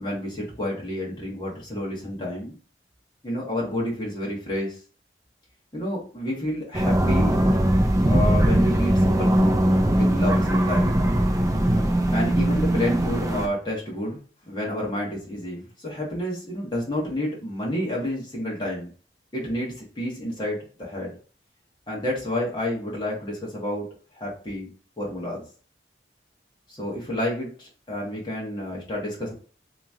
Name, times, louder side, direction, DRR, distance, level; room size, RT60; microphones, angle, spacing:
voice 1, 0.0-2.5 3.2-4.8 5.7-7.3 8.1-9.6 9.9-10.9 12.1-14.2 14.5-18.9 19.3-21.1 21.9-23.9 24.2-24.7 25.0-25.4 26.8-29.3, left 1 dB, 25° left, -4 dB, 1.3 m, -29 dB
sound 1, 6.7-13.5, right 1 dB, 20° right, 0.5 m, -20 dB
3.0 x 3.0 x 3.6 m, 0.40 s
head